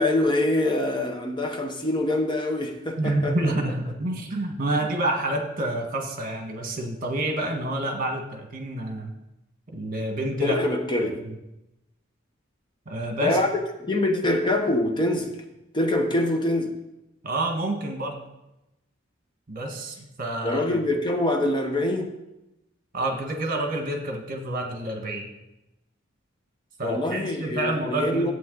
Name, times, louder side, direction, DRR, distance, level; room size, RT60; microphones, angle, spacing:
voice 1, 0.0-3.6 10.4-11.2 13.2-15.3 15.7-16.8 20.4-22.2 26.8-28.3, left 1 dB, 25° left, 4 dB, 1.0 m, -24 dB
voice 2, 3.0-9.1 9.7-10.6 11.0-11.1 12.8-13.4 17.2-18.2 19.5-20.6 22.9-25.3 26.8-28.3, right 1 dB, 45° right, 3 dB, 1.7 m, -28 dB
13.0 x 8.3 x 4.0 m, 0.92 s
head